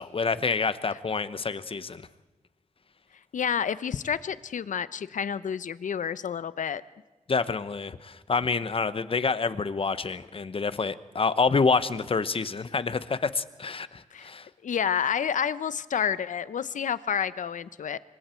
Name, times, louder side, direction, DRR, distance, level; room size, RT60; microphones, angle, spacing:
voice 1, 0.0-2.1 7.3-14.5, left 4 dB, 45° left, 14 dB, 1.1 m, -27 dB
voice 2, 3.3-6.8 14.1-14.3 14.6-18.0, left 7 dB, 80° left, 15 dB, 0.8 m, -29 dB
26.5 x 24.5 x 4.6 m, 1.2 s
wide cardioid pair, 90°, 13 cm